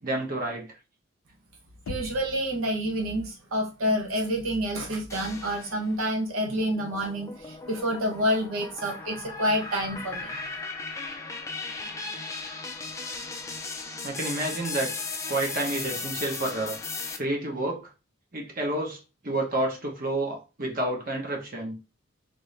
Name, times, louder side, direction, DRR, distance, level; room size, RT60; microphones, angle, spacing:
voice 1, 0.0-0.7 14.0-14.9 15.3-16.8 17.2-17.8 18.3-21.8, right 1 dB, 45° right, 0 dB, 0.9 m, -29 dB
Knock, 1.9-2.5, left 4 dB, 90° left, 0.4 m, -38 dB
voice 2, 1.9-10.3, equal, 85° right, 1 dB, 0.8 m, -28 dB
sound 1, 5.1-6.0 6.4-17.2, left 3 dB, 15° left, 0.4 m, -37 dB
3.5 x 2.6 x 3.2 m, 0.31 s
head